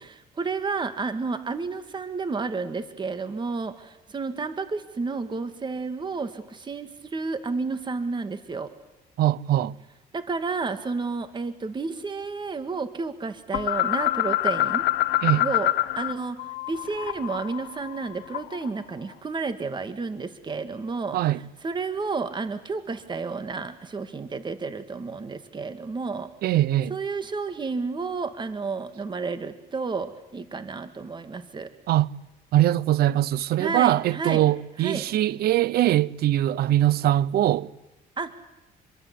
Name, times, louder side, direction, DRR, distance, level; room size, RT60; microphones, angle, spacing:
voice 1, 0.0-8.7 10.1-14.9 15.4-26.3 26.9-31.7 33.6-34.4 34.8-35.1 38.2-38.3, right 4 dB, 25° right, 2.0 m, -31 dB
voice 2, 9.2-9.8 15.2-15.4 21.1-21.4 26.4-26.9 31.9-32.1 32.5-37.7, right 13 dB, 70° right, 0.8 m, -22 dB
sound 1, 13.5-16.1 16.4-18.7, left 16 dB, 80° left, 0.9 m, -26 dB
27.0 x 22.5 x 8.3 m
cardioid pair, 110°, 17 cm